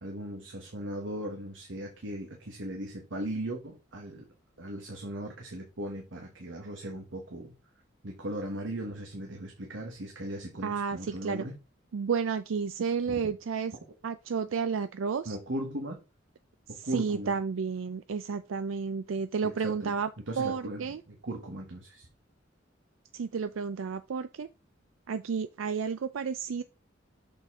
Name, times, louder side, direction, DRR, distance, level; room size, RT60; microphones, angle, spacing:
voice 1, 0.0-4.3 4.6-7.5 8.0-11.6 15.2-16.0 16.7-17.3 19.4-20.0 20.3-22.1, right 1 dB, 70° right, 1.4 m, -38 dB
voice 2, 10.6-11.4 11.9-13.7 14.0-15.4 16.8-20.1 20.4-21.0 23.1-24.5 25.1-26.6, right 6 dB, 85° right, 0.4 m, -31 dB
6.6 x 5.3 x 3.7 m
head